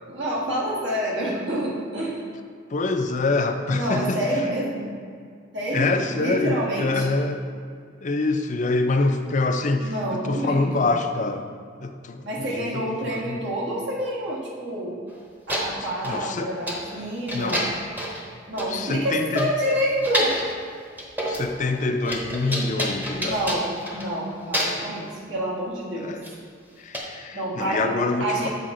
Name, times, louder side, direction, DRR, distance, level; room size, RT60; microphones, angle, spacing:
voice 1, 0.1-2.2 3.7-4.9 5.5-7.2 9.8-10.7 12.2-15.0 15.5-17.7 18.5-20.4 23.2-26.1 27.3-28.5, right 1 dB, 65° right, -5 dB, 1.7 m, -28 dB
voice 2, 2.7-4.2 5.7-7.4 8.0-11.4 11.8-13.4 16.0-16.5 17.3-17.6 18.7-19.5 21.3-23.4 26.0-26.2 26.8-28.5, left 3 dB, 40° left, 5 dB, 0.5 m, -25 dB
sound 1, 15.1-15.2 15.5-16.2 16.7-16.9 17.3-18.3 18.6-18.7 19.1-19.2 19.4-20.5 21.0-21.5 21.8-24.2 24.5-24.9 26.2-26.4 26.9-27.0, equal, 10° right, 0.9 m, -29 dB
7.7 x 5.0 x 3.8 m, 2.1 s
head